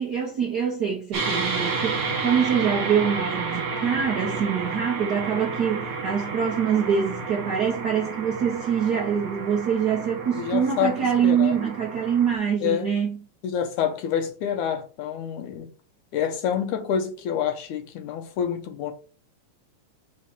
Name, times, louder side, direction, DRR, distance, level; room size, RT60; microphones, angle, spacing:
voice 1, 0.0-13.2, right 7 dB, 85° right, 0.8 m, -24 dB
sound 1, 1.1-12.4, right 4 dB, 55° right, 2.6 m, -31 dB
voice 2, 10.4-11.0 11.2-11.6 12.6-12.9 13.4-15.7 16.1-18.9, left 8 dB, 80° left, 2.3 m, -27 dB
5.5 x 3.2 x 5.6 m
omnidirectional pair, 3.5 m